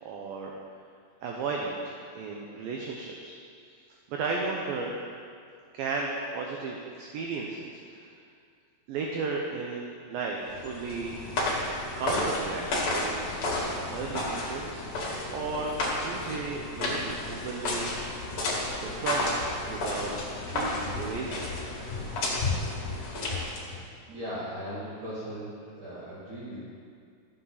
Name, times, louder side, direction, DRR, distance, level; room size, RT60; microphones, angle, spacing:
voice 1, 0.0-0.6 1.2-3.4 3.6-3.8 4.1-5.0 5.7-8.1 8.9-11.2 12.0-12.7 12.9-14.8 15.3-15.7 16.0-18.1 18.7-20.1 20.4-21.4, right 4 dB, 75° right, 0 dB, 2.2 m, -34 dB
sound 1, 10.5-23.8, left 2 dB, 45° left, 2.8 m, -32 dB
voice 2, 24.1-26.6, equal, 50° right, -11 dB, 3.5 m, -38 dB
14.5 x 8.8 x 4.0 m, 2.3 s
omnidirectional pair, 4.9 m